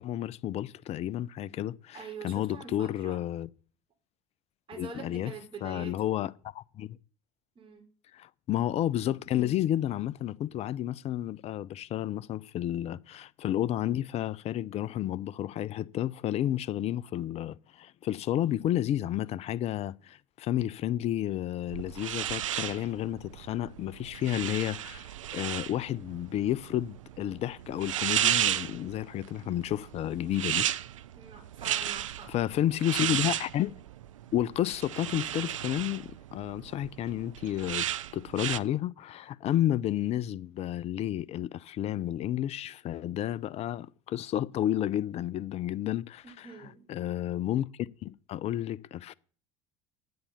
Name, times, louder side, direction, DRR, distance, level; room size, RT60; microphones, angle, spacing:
voice 1, 0.0-3.5 4.7-5.3 5.6-7.0 8.1-30.7 32.3-33.7 34.3-46.5 46.9-49.1, left 12 dB, 40° left, 0.5 m, -31 dB
voice 2, 1.9-3.2 4.7-6.2 7.6-7.9 31.1-32.3 46.2-46.8, right 5 dB, 35° right, 4.0 m, -45 dB
sound 1, 21.7-38.6, right 12 dB, 80° right, 0.4 m, -34 dB
8.4 x 8.0 x 6.7 m
hypercardioid pair, 70°, 16 cm